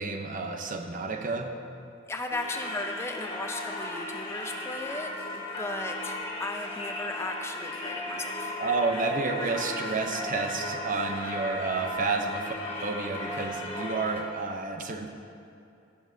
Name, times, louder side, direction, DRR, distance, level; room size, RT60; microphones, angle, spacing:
voice 1, 0.0-1.6 8.6-12.5 12.8-15.1, right 3 dB, 45° right, 5 dB, 0.6 m, -30 dB
voice 2, 2.1-8.6, left 2 dB, 15° left, 4 dB, 0.4 m, -36 dB
Singing / Church bell, 2.3-14.2, left 1 dB, 30° left, 1.3 m, -36 dB
16.5 x 7.0 x 2.7 m, 2.6 s
head